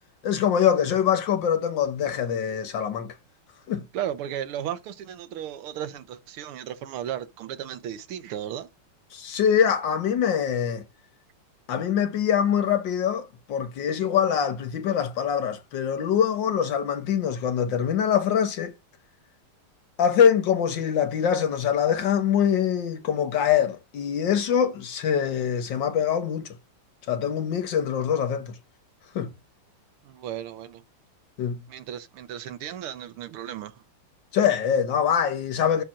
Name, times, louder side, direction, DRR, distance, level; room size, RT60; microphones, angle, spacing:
voice 1, 0.2-3.1 3.7-3.8 9.1-10.8 11.7-18.7 20.0-26.5 27.1-28.5 29.1-29.3 31.4-31.6 34.3-35.8, left 8 dB, 65° left, 1.5 m, -24 dB
voice 2, 3.9-8.7 30.0-30.8 31.7-33.8, right 10 dB, 80° right, 1.8 m, -35 dB
13.0 x 6.0 x 2.5 m
omnidirectional pair, 2.4 m